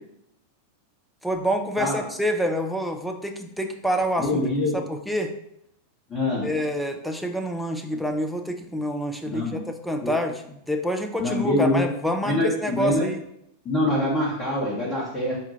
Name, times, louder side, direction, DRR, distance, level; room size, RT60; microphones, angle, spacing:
voice 1, 1.2-4.4 4.7-5.3 6.4-10.4 10.7-13.2, equal, ahead, 4 dB, 0.5 m, -27 dB
voice 2, 4.2-4.7 6.1-6.4 9.3-9.6 10.0-10.1 11.2-11.8 12.2-13.0 13.6-15.4, left 1 dB, 20° left, -7 dB, 1.2 m, -24 dB
4.4 x 2.4 x 4.2 m, 0.76 s
figure-of-eight pair, 90°, 0 cm